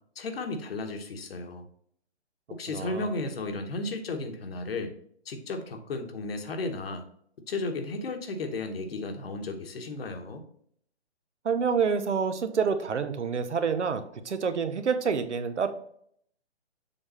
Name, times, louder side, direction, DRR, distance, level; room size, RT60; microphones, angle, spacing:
voice 1, 0.1-1.6 2.5-4.9 5.2-7.0 7.5-10.4, left 3 dB, 60° left, 6 dB, 1.1 m, -34 dB
voice 2, 2.7-3.1 11.4-15.7, right 6 dB, 85° right, 10 dB, 0.9 m, -28 dB
7.1 x 3.4 x 4.1 m, 0.65 s
hypercardioid pair, 150°, 34 cm